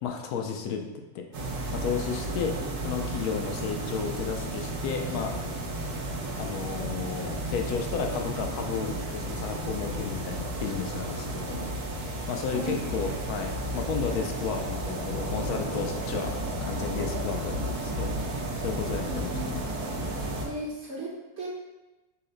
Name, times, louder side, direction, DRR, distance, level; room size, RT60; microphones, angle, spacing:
voice 1, 0.0-0.8 1.1-1.2 1.7-2.5 2.8-5.3 6.4-11.6 12.3-16.3 16.6-18.1 18.6-19.6, left 6 dB, 80° left, 3 dB, 1.1 m, -32 dB
sound 1, 1.3-20.5, right 1 dB, 85° right, 1.3 m, -33 dB
voice 2, 12.5-12.8 18.9-19.5 20.4-21.5, right 1 dB, 55° right, -3 dB, 0.8 m, -37 dB
5.6 x 2.1 x 3.8 m, 1.1 s
omnidirectional pair, 1.6 m